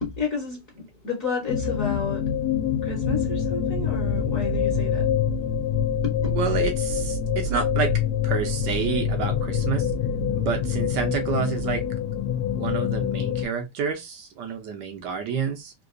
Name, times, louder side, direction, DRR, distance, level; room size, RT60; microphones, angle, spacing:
voice 1, 0.0-2.2 2.8-5.1 6.0-6.1, left 5 dB, 45° left, 1.3 m, -31 dB
sound 1, 1.5-13.4, left 7 dB, 80° left, 0.8 m, -25 dB
voice 2, 6.3-9.9 10.3-11.8 12.6-15.7, right 6 dB, 65° right, 1.2 m, -29 dB
3.8 x 2.6 x 2.4 m
omnidirectional pair, 2.4 m